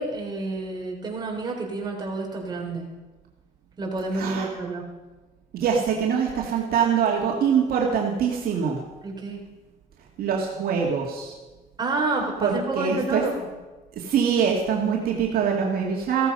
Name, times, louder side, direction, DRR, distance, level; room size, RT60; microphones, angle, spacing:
voice 1, 0.0-2.9 3.8-4.8 9.0-9.4 11.8-13.5, right 3 dB, 25° right, 0 dB, 3.8 m, -29 dB
voice 2, 4.1-4.5 5.5-8.8 10.2-11.3 12.4-13.2 14.0-16.3, right 7 dB, 60° right, -1 dB, 2.0 m, -24 dB
15.0 x 13.5 x 5.4 m, 1.2 s
cardioid pair, 110°, 17 cm